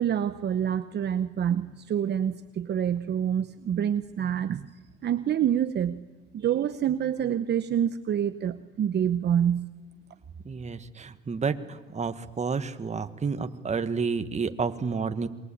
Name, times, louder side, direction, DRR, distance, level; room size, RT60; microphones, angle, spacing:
voice 1, 0.0-4.7 5.0-6.0 6.3-9.7, right 9 dB, 60° right, 10 dB, 0.9 m, -27 dB
voice 2, 10.4-15.3, right 5 dB, 35° right, 9 dB, 1.8 m, -30 dB
27.5 x 23.0 x 8.7 m, 1.2 s
cardioid pair, 90°, 20 cm